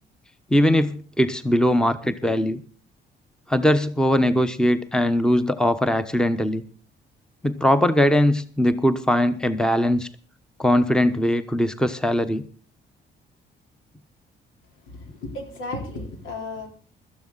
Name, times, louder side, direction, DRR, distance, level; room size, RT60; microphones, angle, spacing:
voice 1, 0.5-2.6 3.5-6.6 7.4-10.1 10.6-12.4, left 1 dB, 5° left, 11 dB, 1.0 m, -20 dB
voice 2, 14.9-16.7, left 2 dB, 85° left, 3 dB, 3.9 m, -34 dB
17.0 x 13.0 x 4.0 m, 0.39 s
cardioid pair, 90°, 20 cm